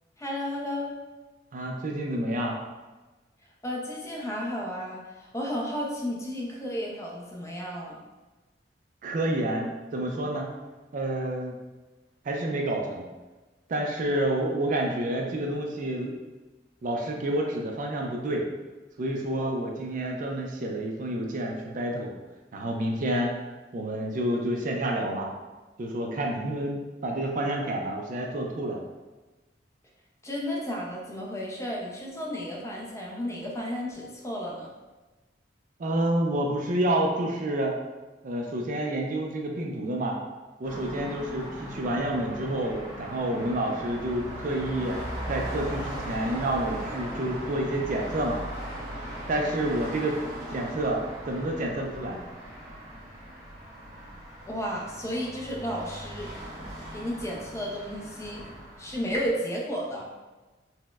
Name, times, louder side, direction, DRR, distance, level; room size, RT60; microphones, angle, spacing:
voice 1, 0.2-1.0 3.6-8.0 30.2-34.7 54.5-56.3 56.9-58.4 58.8-60.1, equal, 15° left, -3 dB, 0.5 m, -33 dB
voice 2, 1.5-2.6 9.0-10.5 10.9-11.5 12.3-13.1 13.7-16.1 16.8-18.5 19.0-22.1 22.5-23.3 23.7-25.3 25.8-28.8 35.8-37.7 38.2-40.2 40.6-45.0 45.3-48.4 49.3-50.2 50.5-52.2, right 1 dB, 45° right, 1 dB, 0.4 m, -29 dB
sound 1, 40.6-59.3, equal, 20° right, 1.0 m, -39 dB
4.1 x 2.0 x 2.3 m, 1.2 s
head